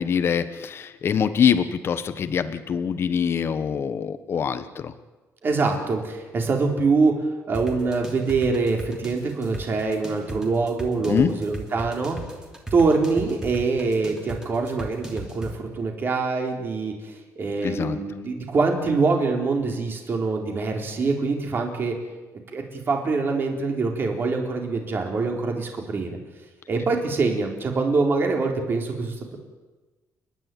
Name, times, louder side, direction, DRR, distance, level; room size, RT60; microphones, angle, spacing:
voice 1, 0.0-4.9 11.1-11.3 17.6-18.0, left 7 dB, 45° left, 11 dB, 1.3 m, -24 dB
voice 2, 5.4-7.1 7.5-12.2 12.7-21.9 22.5-26.2 26.7-29.4, right 4 dB, 40° right, 2 dB, 4.0 m, -24 dB
sound 1, 7.5-15.5, right 2 dB, 10° right, 3.1 m, -36 dB
30.0 x 11.0 x 9.3 m, 1.2 s
cardioid pair, 135°, 6 cm